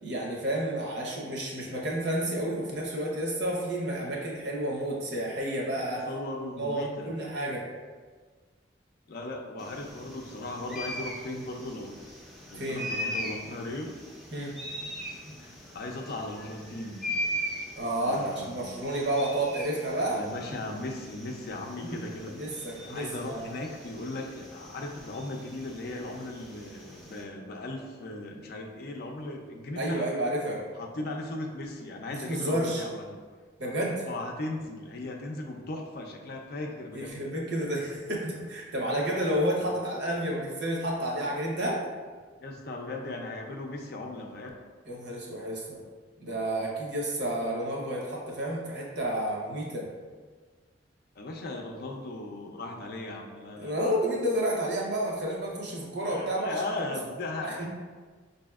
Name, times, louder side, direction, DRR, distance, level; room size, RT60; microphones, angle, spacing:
voice 1, 0.0-6.0 6.6-7.6 12.5-12.9 14.3-14.5 17.8-20.2 21.8-22.0 22.3-23.5 29.8-30.6 32.3-32.8 33.6-34.0 36.9-41.8 44.9-45.8 46.2-49.9 53.6-56.6 57.4-57.7, right 1 dB, 60° right, -2 dB, 0.8 m, -30 dB
voice 2, 5.9-7.1 9.1-12.0 12.5-13.9 15.4-17.0 18.0-18.7 20.0-22.3 22.9-30.1 30.7-33.2 34.0-37.2 39.6-39.8 42.4-44.5 51.2-53.8 56.0-57.7, left 2 dB, 55° left, 1 dB, 0.5 m, -37 dB
sound 1, 9.6-27.2, equal, ahead, 0.5 m, -40 dB
5.0 x 2.7 x 2.3 m, 1.5 s
head